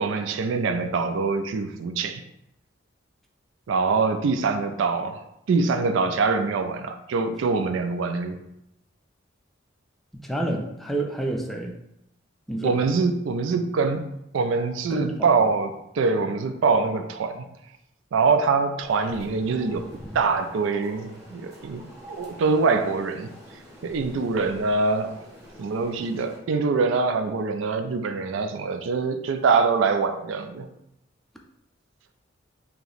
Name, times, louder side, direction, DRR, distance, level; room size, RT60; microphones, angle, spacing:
voice 1, 0.0-2.2 3.7-5.2 5.5-8.4 12.6-14.1 14.3-17.4 18.1-19.9 20.1-21.8 22.1-23.3 23.8-25.3 25.6-30.7, right 4 dB, 75° right, 8 dB, 0.3 m, -24 dB
voice 2, 10.1-11.8 12.5-12.9 14.9-15.3, right 1 dB, ahead, 1 dB, 0.4 m, -29 dB
sound 1, 18.8-26.4, equal, 15° right, 0.8 m, -44 dB
2.9 x 2.8 x 4.0 m, 0.84 s
head